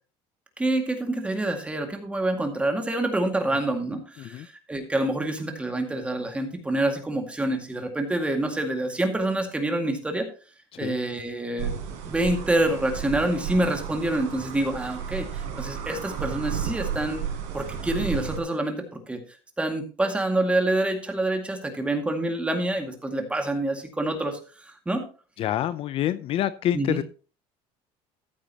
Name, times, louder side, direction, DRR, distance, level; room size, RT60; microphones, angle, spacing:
voice 1, 0.6-10.3 10.8-11.8 12.1-17.2 17.5-19.2 19.6-25.1 26.7-27.0, right 1 dB, 10° right, 4 dB, 2.1 m, -27 dB
sound 1, 11.6-18.4, right 7 dB, 70° right, 4.1 m, -33 dB
voice 2, 25.4-27.0, left 12 dB, 50° left, 14 dB, 0.5 m, -27 dB
14.0 x 8.6 x 2.9 m, 0.36 s
cardioid pair, 130°, 12 cm